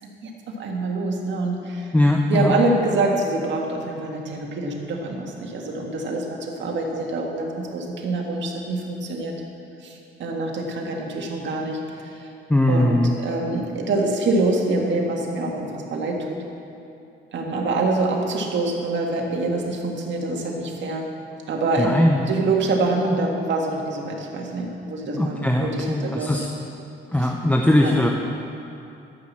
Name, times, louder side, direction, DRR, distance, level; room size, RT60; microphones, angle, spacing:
voice 1, 0.0-1.9 2.3-9.3 9.8-12.3 12.7-16.4 17.3-21.1 21.5-22.0 22.3-26.5 27.2-27.3 27.8-28.0, right 2 dB, 65° right, 0 dB, 1.9 m, -25 dB
voice 2, 1.9-2.5 12.5-13.2 21.8-22.3 25.2-26.4 27.1-28.1, left 1 dB, 10° left, 1 dB, 0.8 m, -20 dB
13.0 x 6.0 x 7.4 m, 2.7 s
cardioid pair, 90°, 20 cm